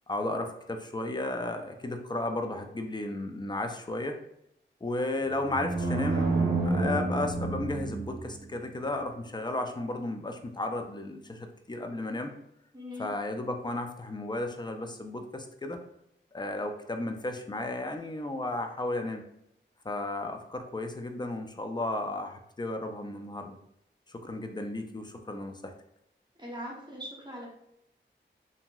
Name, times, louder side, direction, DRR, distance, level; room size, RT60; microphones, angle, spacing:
voice 1, 0.1-4.2 4.8-12.3 13.0-15.8 16.3-19.2 19.8-23.6 24.1-25.7, left 2 dB, 25° left, 5 dB, 0.4 m, -34 dB
sound 1, 5.5-8.5, right 3 dB, 70° right, 0.6 m, -29 dB
voice 2, 12.7-13.1 26.4-27.5, equal, 25° right, -3 dB, 0.9 m, -40 dB
2.8 x 2.7 x 2.3 m, 0.78 s
cardioid pair, 50°, 19 cm